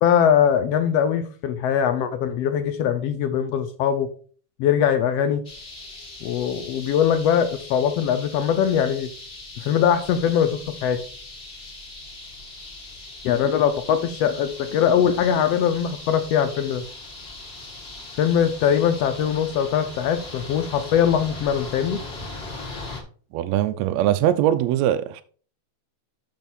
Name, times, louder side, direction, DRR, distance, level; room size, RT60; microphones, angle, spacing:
voice 1, 0.0-4.1 4.6-5.4 6.2-9.1 9.6-11.0 13.2-16.8 18.2-22.0, left 8 dB, 75° left, 1.5 m, -21 dB
sound 1, 5.4-23.0, left 2 dB, 30° left, 1.2 m, -39 dB
voice 2, 23.3-25.2, right 12 dB, 80° right, 1.6 m, -21 dB
6.9 x 6.3 x 4.1 m
omnidirectional pair, 3.5 m